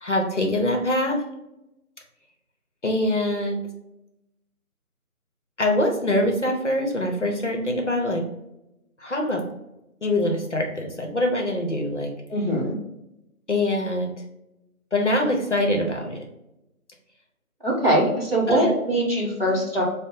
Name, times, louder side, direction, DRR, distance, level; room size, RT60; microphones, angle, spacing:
voice 1, 0.0-1.2 2.8-3.6 5.6-8.3 9.0-9.5 10.0-12.1 13.5-14.1 14.9-16.3 18.5-18.7 19.4-19.5, left 1 dB, 50° left, 2 dB, 0.7 m, -24 dB
voice 2, 12.3-12.7 17.6-19.8, equal, 40° right, -3 dB, 1.0 m, -22 dB
3.7 x 2.0 x 3.8 m, 0.88 s
figure-of-eight pair, 175°, 44 cm